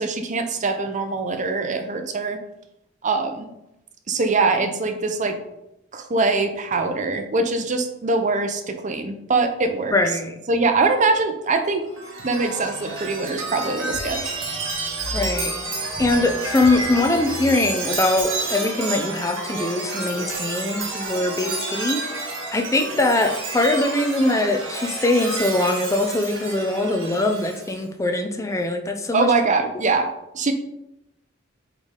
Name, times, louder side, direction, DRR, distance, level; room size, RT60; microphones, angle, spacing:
voice 1, 0.0-2.4 3.0-3.5 4.1-5.4 5.9-9.9 10.5-11.9 12.2-14.3 29.1-30.1 30.3-30.5, right 3 dB, 40° right, 7 dB, 0.6 m, -23 dB
voice 2, 9.9-10.4 15.1-15.6 16.0-22.0 22.5-29.3, left 2 dB, 15° left, 5 dB, 0.5 m, -22 dB
Chime, 11.9-27.8, right 2 dB, 80° right, 1.9 m, -30 dB
8.2 x 3.3 x 3.7 m, 0.86 s
head